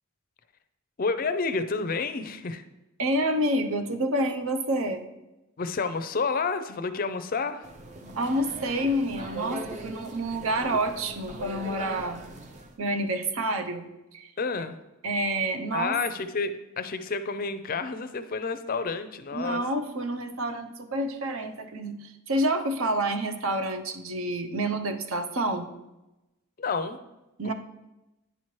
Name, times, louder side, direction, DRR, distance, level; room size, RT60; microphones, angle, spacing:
voice 1, 1.0-2.6 5.6-7.7 14.4-14.8 15.7-19.6 26.6-27.0 27.4-27.5, left 4 dB, 40° left, 11 dB, 0.4 m, -30 dB
voice 2, 3.0-5.1 8.2-12.2 12.8-14.3 15.0-16.0 19.3-25.7 27.4-27.5, right 1 dB, 70° right, 7 dB, 0.7 m, -28 dB
sound 1, 7.6-12.8, right 2 dB, 35° right, 0.5 m, -39 dB
10.0 x 4.3 x 3.1 m, 0.97 s
head